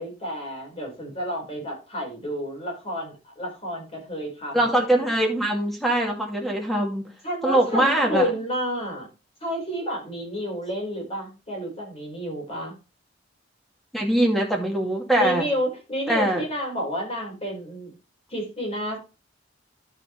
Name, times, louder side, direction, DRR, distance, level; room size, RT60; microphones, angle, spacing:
voice 1, 0.0-4.8 7.2-9.1 9.4-12.7 15.1-17.9 18.3-19.0, equal, 30° left, -1 dB, 4.8 m, -30 dB
voice 2, 4.5-7.0 7.4-8.3 13.9-15.5 16.1-16.4, right 1 dB, ahead, 1 dB, 2.3 m, -22 dB
12.0 x 6.3 x 3.3 m, 0.30 s
head